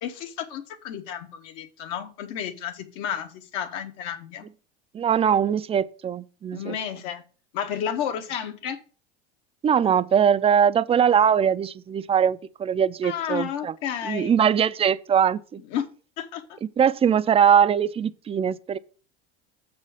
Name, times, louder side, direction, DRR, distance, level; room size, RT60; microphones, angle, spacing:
voice 1, 0.0-4.4 6.5-7.2 7.5-8.8 13.0-14.4 15.7-15.8 16.2-16.6, left 9 dB, 65° left, 1.4 m, -32 dB
voice 2, 4.9-6.8 9.6-13.7 14.0-15.6 16.6-18.8, right 8 dB, 20° right, 0.4 m, -21 dB
7.0 x 4.3 x 6.2 m
hypercardioid pair, 95°, 30 cm